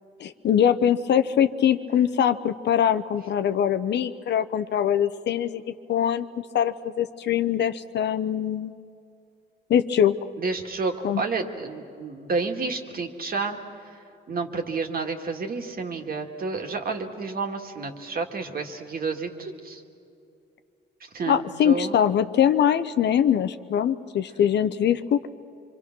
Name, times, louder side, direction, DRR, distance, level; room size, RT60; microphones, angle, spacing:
voice 1, 0.2-6.3 6.5-8.7 9.7-10.2 11.0-11.2 21.3-25.3, left 9 dB, 60° left, 12 dB, 0.7 m, -22 dB
voice 2, 10.4-13.6 13.9-14.0 14.3-19.8 21.1-22.0, right 4 dB, 50° right, 4 dB, 2.1 m, -30 dB
25.0 x 25.0 x 6.0 m, 2.6 s
cardioid pair, 90°, 20 cm